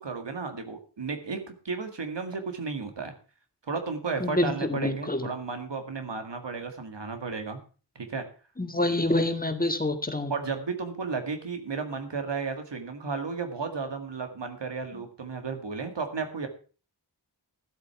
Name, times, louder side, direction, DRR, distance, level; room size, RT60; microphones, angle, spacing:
voice 1, 0.0-3.1 3.7-7.6 8.0-8.3 10.3-16.5, right 4 dB, 75° right, 7 dB, 2.0 m, -33 dB
voice 2, 4.2-5.3 8.6-10.3, left 1 dB, 20° left, 8 dB, 1.7 m, -27 dB
13.5 x 8.0 x 5.8 m, 0.38 s
wide cardioid pair, 50°, 43 cm